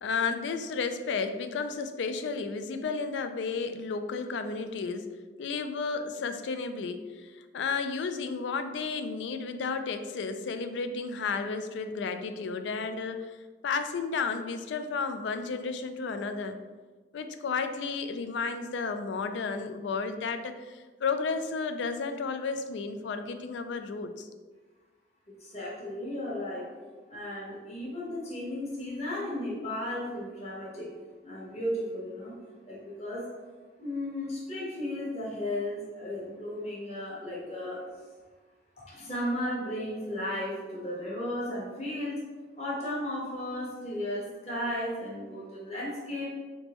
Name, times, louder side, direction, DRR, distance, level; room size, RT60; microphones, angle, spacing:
voice 1, 0.0-5.1 5.4-13.4 13.6-16.6 17.1-24.3, left 4 dB, 80° left, 8 dB, 0.3 m, -32 dB
voice 2, 25.3-26.7 27.1-30.9 31.2-32.3 32.6-33.3 33.8-37.8 38.9-42.2 42.6-46.3, left 1 dB, 35° left, -5 dB, 1.2 m, -35 dB
3.9 x 3.6 x 3.0 m, 1.4 s
head